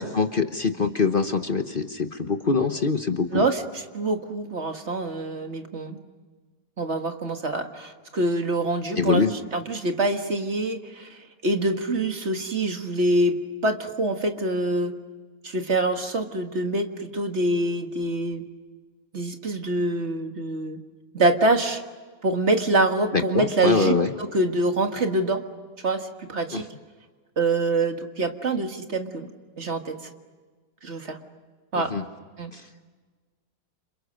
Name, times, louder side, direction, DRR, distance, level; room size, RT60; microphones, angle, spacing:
voice 1, 0.0-3.4 8.9-9.3 23.1-24.1 26.5-26.6 31.8-32.0 32.5-32.7, left 4 dB, 40° left, 7 dB, 1.2 m, -24 dB
voice 2, 3.3-3.6 3.9-6.0 6.8-15.0 15.4-18.4 19.1-20.8 21.1-21.8 22.2-25.4 25.8-26.6 27.4-29.3 29.6-30.0 30.8-31.2 31.7-31.9 32.4-32.5, right 2 dB, 50° right, 5 dB, 2.0 m, -25 dB
30.0 x 27.5 x 6.5 m, 1.4 s
omnidirectional pair, 1.5 m